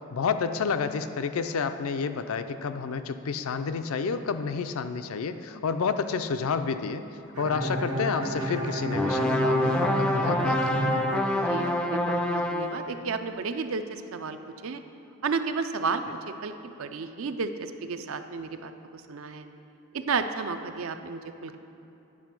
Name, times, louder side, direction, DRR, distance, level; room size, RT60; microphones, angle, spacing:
voice 1, 0.1-7.0 7.4-11.0, left 5 dB, 70° left, 9 dB, 0.4 m, -30 dB
Bowed string instrument, 7.3-12.2, right 1 dB, 80° right, 1.0 m, -30 dB
sound 1, 8.9-12.9, left 1 dB, 5° left, 0.3 m, -27 dB
voice 2, 11.3-14.4 14.6-14.8 15.2-19.5 19.9-21.6, right 4 dB, 65° right, 9 dB, 0.5 m, -32 dB
9.7 x 5.1 x 5.9 m, 2.9 s
head